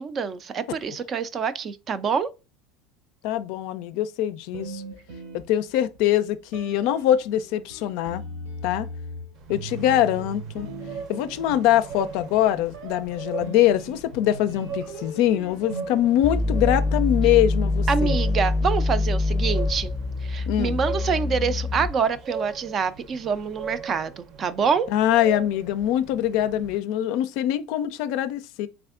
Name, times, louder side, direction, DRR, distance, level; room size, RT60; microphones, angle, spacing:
voice 1, 0.0-2.3 17.9-19.9 20.2-24.9, right 6 dB, 40° right, 0.4 m, -26 dB
voice 2, 3.2-4.8 5.3-8.2 8.6-8.9 9.5-10.7 11.1-18.2 20.5-20.8 24.9-28.7, left 12 dB, 70° left, 0.4 m, -23 dB
sound 1, 4.5-6.0 6.5-18.7, right 1 dB, 85° right, 1.2 m, -40 dB
sound 2, 9.3-26.8, right 6 dB, 60° right, 0.7 m, -40 dB
sound 3, 16.2-22.2, left 3 dB, 15° left, 0.7 m, -25 dB
3.5 x 3.3 x 2.4 m
supercardioid pair, 100°, 0 cm